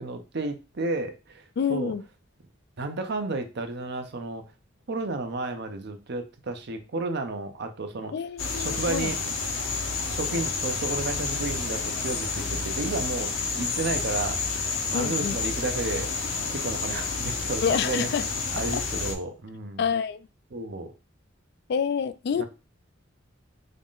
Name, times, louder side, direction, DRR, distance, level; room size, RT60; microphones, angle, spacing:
voice 1, 0.0-1.4 1.7-1.9 2.8-4.4 4.9-8.1 8.6-9.2 10.1-14.4 14.9-16.1 16.5-18.1 18.5-19.8 20.5-20.9 22.4-22.5, right 3 dB, 55° right, 0.6 m, -32 dB
voice 2, 1.6-2.0 8.1-9.1 14.9-15.4 17.6-18.3 18.5-18.8 19.8-20.3 21.7-22.4, left 7 dB, 55° left, 0.3 m, -28 dB
sound 1, 8.4-19.1, left 4 dB, 85° left, 0.9 m, -30 dB
3.8 x 2.5 x 3.6 m
head